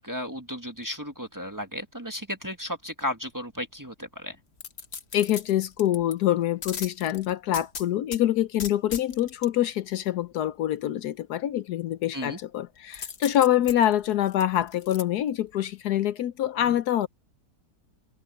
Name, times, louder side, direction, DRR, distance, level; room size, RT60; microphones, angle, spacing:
voice 1, 0.0-4.4 12.1-12.4, equal, 10° right, 1.4 m, -34 dB
sound 1, 4.6-6.1 6.6-8.2 8.6-9.5 12.9-15.0 15.5-15.6, left 6 dB, 45° left, 1.3 m, -38 dB
voice 2, 5.1-17.1, left 12 dB, 75° left, 1.2 m, -25 dB
omnidirectional pair, 1.8 m